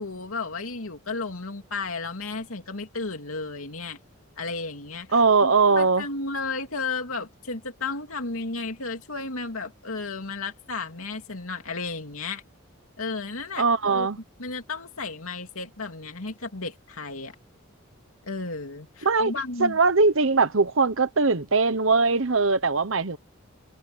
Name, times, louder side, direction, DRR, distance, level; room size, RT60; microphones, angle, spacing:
voice 1, 0.0-4.0 4.4-12.4 13.0-14.1 14.4-17.3 18.3-19.8, left 3 dB, 85° left, 2.8 m, -33 dB
voice 2, 5.1-6.0 13.6-14.2 19.0-19.3 19.6-23.2, right 4 dB, 65° right, 1.1 m, -21 dB
head